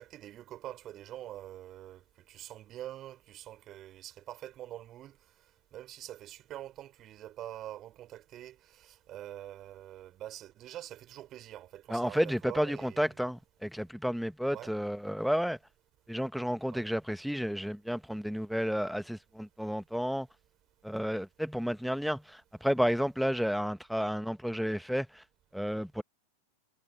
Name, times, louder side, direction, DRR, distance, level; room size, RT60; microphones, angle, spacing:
voice 1, 0.0-5.2 5.7-13.1 14.5-14.7 16.7-16.9, right 13 dB, 30° right, 3.6 m, -45 dB
voice 2, 11.9-15.6 16.1-20.3 20.8-25.2 25.5-26.0, equal, ahead, 1.6 m, -31 dB
figure-of-eight pair, 90°, 0 cm